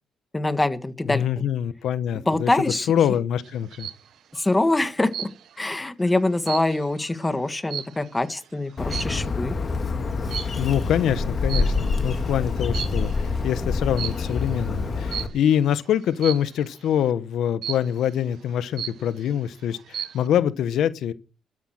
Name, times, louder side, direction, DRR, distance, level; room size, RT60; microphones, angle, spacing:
voice 1, 0.3-1.4 2.2-2.9 4.3-5.3 5.6-9.5, left 2 dB, 15° left, 1.7 m, -24 dB
voice 2, 1.1-2.5 2.9-3.9 10.6-21.1, left 9 dB, 75° left, 1.0 m, -24 dB
sound 1, 3.4-4.1 5.1-5.7 6.0-8.3 8.9-9.3 10.3-10.7 11.5-12.1 12.6-13.3 14.0-14.3 15.1-15.5 16.2-16.6 17.6-18.1 18.5-18.6 18.8-19.4 19.7-20.3, right 10 dB, 70° right, 1.1 m, -34 dB
Bird, 8.8-15.3, left 3 dB, 40° left, 2.5 m, -26 dB
12.5 x 10.0 x 6.5 m
cardioid pair, 90°, 0 cm